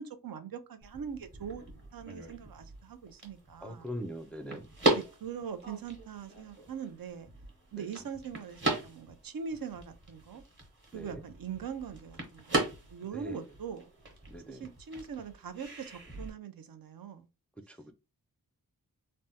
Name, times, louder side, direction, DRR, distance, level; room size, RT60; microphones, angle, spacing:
voice 1, 0.0-1.6 1.9-3.9 4.9-7.3 7.7-10.4 10.9-12.6 12.9-13.9 14.5-17.3, right 7 dB, 70° right, 0.5 m, -42 dB
sound 1, 0.8-16.3, right 2 dB, 30° right, 1.1 m, -38 dB
voice 2, 3.6-4.7 7.8-7.9 10.9-11.2 13.1-13.4 14.3-14.6 17.7-17.9, equal, 5° left, 0.4 m, -41 dB
3.3 x 2.1 x 2.8 m
wide cardioid pair, 70°, 36 cm